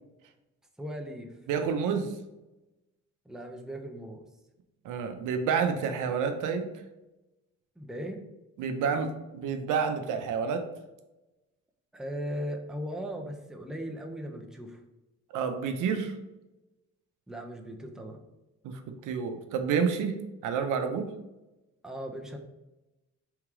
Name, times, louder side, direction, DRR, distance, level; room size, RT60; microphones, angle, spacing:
voice 1, 0.8-1.4 3.3-4.3 7.8-8.2 11.9-14.8 17.3-18.2 21.8-22.4, equal, ahead, 2 dB, 0.6 m, -38 dB
voice 2, 1.5-2.1 4.8-6.7 8.6-10.6 15.3-16.1 18.6-20.2 20.4-21.1, right 6 dB, 85° right, 6 dB, 0.6 m, -29 dB
3.6 x 3.0 x 4.8 m, 1.0 s
cardioid pair, 90°, 30 cm